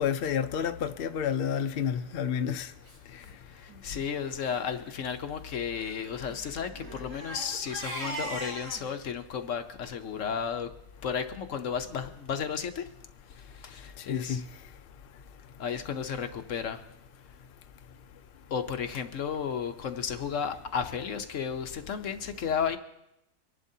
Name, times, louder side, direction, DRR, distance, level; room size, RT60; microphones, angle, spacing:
voice 1, 0.0-2.7 14.1-14.4, left 8 dB, 90° left, 0.5 m, -29 dB
Crying sobbing, 1.9-2.2 2.9-3.0 3.2-3.3 3.7-3.9 4.3-4.6 5.7-8.8, right 1 dB, 80° right, 3.8 m, -40 dB
voice 2, 3.5-10.7 11.0-12.9 13.4-14.4 15.6-16.8 18.5-22.8, left 7 dB, 60° left, 1.0 m, -33 dB
25.5 x 11.0 x 2.7 m
omnidirectional pair, 1.7 m